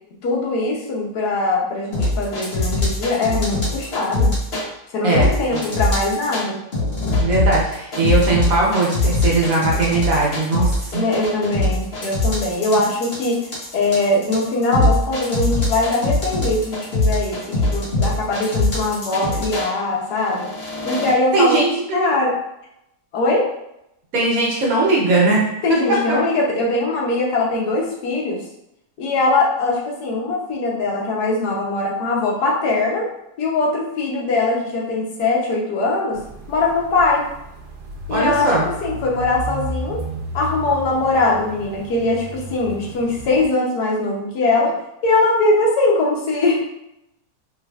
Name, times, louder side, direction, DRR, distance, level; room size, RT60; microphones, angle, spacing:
voice 1, 0.2-4.3 4.9-6.6 10.9-13.5 13.7-17.4 17.7-20.5 20.8-21.6 21.9-22.3 23.1-23.5 25.6-28.4 29.0-33.1 33.4-36.2 36.5-37.3 38.1-38.5 38.8-40.0 40.3-44.7 45.0-46.6, left 2 dB, 80° left, -2 dB, 1.3 m, -21 dB
sound 1, 1.9-4.6 5.1-6.4 6.7-19.7 20.3-21.1, left 2 dB, 45° left, 0.9 m, -21 dB
voice 2, 5.0-5.6 7.2-11.0 21.3-22.1 24.1-25.4 25.7-26.2 38.1-38.6, right 3 dB, 65° right, -3 dB, 1.3 m, -19 dB
sound 2, 36.1-43.5, right 1 dB, 80° right, 1.2 m, -33 dB
3.3 x 3.2 x 2.3 m, 0.82 s
omnidirectional pair, 1.7 m